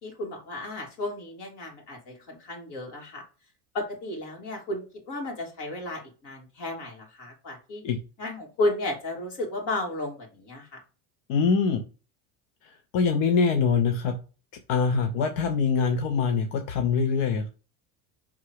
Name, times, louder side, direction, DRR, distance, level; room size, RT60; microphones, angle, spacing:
voice 1, 0.0-3.2 3.7-7.8 8.2-10.8, left 2 dB, 55° left, 1 dB, 3.1 m, -33 dB
voice 2, 11.3-11.8 12.9-14.1 14.7-17.5, left 5 dB, 85° left, 5 dB, 1.0 m, -23 dB
5.8 x 3.7 x 4.9 m, 0.33 s
cardioid pair, 155°, 36 cm